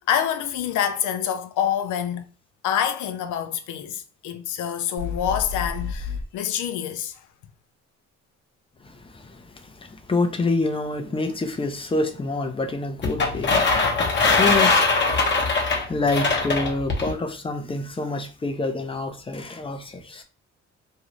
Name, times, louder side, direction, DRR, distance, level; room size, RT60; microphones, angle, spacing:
voice 1, 0.1-2.2 2.6-7.3, left 9 dB, 80° left, 0.5 m, -26 dB
sound 1, 5.0-6.2, left 5 dB, 40° right, 0.8 m, -30 dB
voice 2, 9.8-13.5 14.4-15.0 15.6-20.2, left 3 dB, 20° left, 0.5 m, -27 dB
sound 2, 13.0-17.1, left 3 dB, 35° left, 0.9 m, -21 dB
2.7 x 2.3 x 3.0 m
cardioid pair, 90°, 30 cm